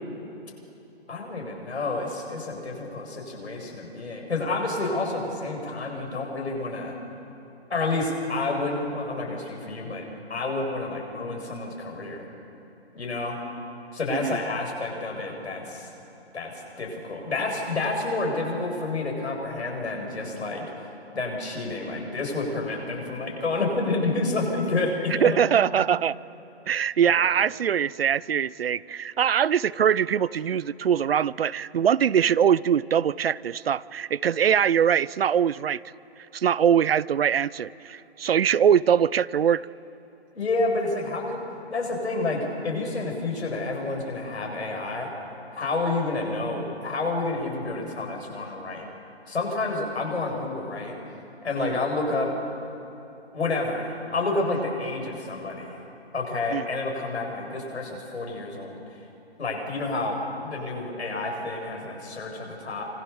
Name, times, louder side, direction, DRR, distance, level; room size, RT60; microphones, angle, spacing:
voice 1, 1.1-7.0 7.7-12.2 12.9-13.4 13.9-15.9 16.3-16.5 16.8-20.7 21.1-25.4 27.1-27.3 40.3-41.4 41.7-45.1 45.5-48.8 49.3-50.9 51.4-52.3 53.3-55.8 56.1-58.7 59.4-62.9, left 3 dB, 80° left, 1 dB, 7.9 m, -29 dB
voice 2, 25.2-26.2 26.7-35.8 36.3-39.6 51.6-51.8 56.5-56.6, right 8 dB, 60° right, 20 dB, 0.7 m, -22 dB
27.5 x 26.5 x 7.2 m, 2.9 s
hypercardioid pair, 145°, 33 cm